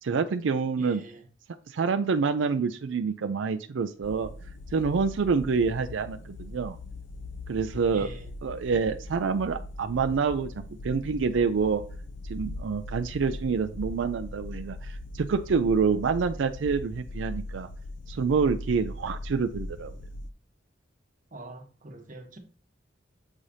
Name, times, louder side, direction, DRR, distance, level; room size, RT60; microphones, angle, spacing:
voice 1, 0.0-1.0 1.7-4.3 4.7-6.8 7.5-8.1 8.4-10.5 10.8-11.8 12.3-17.7 18.1-19.9, right 5 dB, 90° right, 0.4 m, -27 dB
voice 2, 0.8-1.2 7.9-8.3 21.3-22.4, right 2 dB, 45° right, 1.1 m, -44 dB
sound 1, 4.0-20.3, left 2 dB, 80° left, 0.6 m, -40 dB
7.4 x 4.9 x 2.7 m
head